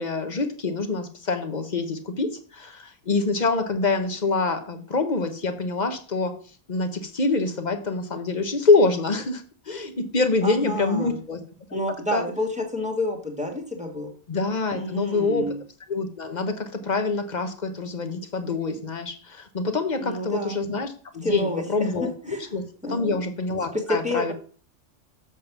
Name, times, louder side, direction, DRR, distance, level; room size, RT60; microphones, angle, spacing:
voice 1, 0.0-6.3 6.7-11.4 11.7-11.8 12.1-12.2 14.3-15.5 15.9-22.6 22.9-24.3, left 3 dB, 35° left, 7 dB, 1.1 m, -25 dB
voice 2, 10.4-11.2 11.7-14.1 14.7-15.6 20.0-20.6 21.2-21.9 22.3-22.4 22.8-23.2 23.7-24.3, left 1 dB, 5° right, 1 dB, 1.7 m, -29 dB
7.4 x 5.5 x 5.9 m, 0.41 s
omnidirectional pair, 1.4 m